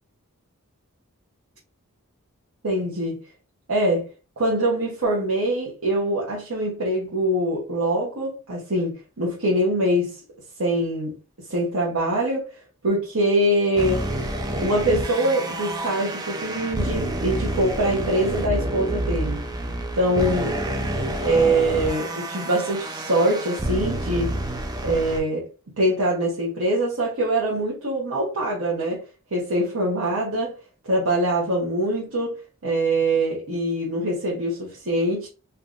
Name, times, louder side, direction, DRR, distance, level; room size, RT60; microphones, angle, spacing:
voice 1, 2.6-3.2 3.7-4.1 4.4-10.2 10.6-11.1 11.5-12.5 12.8-14.0 14.6-19.4 19.9-20.5 21.2-24.3 24.8-25.4 25.8-29.0 29.3-30.5 30.8-32.3 32.6-35.3, right 1 dB, 75° right, 1.0 m, -23 dB
sound 1, 13.8-25.2, right 1 dB, 20° right, 0.5 m, -28 dB
3.4 x 2.6 x 2.5 m
head